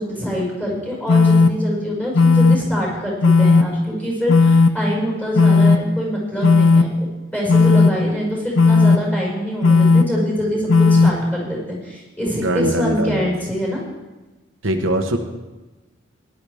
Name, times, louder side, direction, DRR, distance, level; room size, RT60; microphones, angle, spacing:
voice 1, 0.0-7.1 7.3-13.8, equal, 10° left, -4 dB, 5.3 m, -25 dB
sound 1, 1.1-1.5 2.1-2.6 3.2-3.6 4.3-4.7 5.4-5.8 6.4-6.8 7.5-7.9 8.6-9.0 9.6-10.0 10.7-11.1, left 4 dB, 75° left, 0.7 m, -12 dB
voice 2, 12.3-13.2 14.6-15.2, right 1 dB, 80° right, 4 dB, 1.1 m, -21 dB
18.5 x 11.5 x 3.5 m, 1.2 s
head